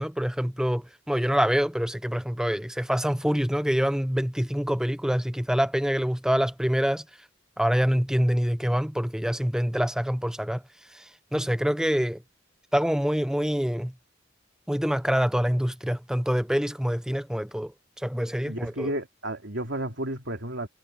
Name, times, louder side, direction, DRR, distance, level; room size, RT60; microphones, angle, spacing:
voice 1, 0.0-7.0 7.6-10.6 10.9-12.2 12.7-13.9 14.7-17.7 18.0-18.9, equal, 5° right, 0.7 m, -26 dB
voice 2, 18.5-20.7, right 1 dB, 60° right, 3.5 m, -32 dB
head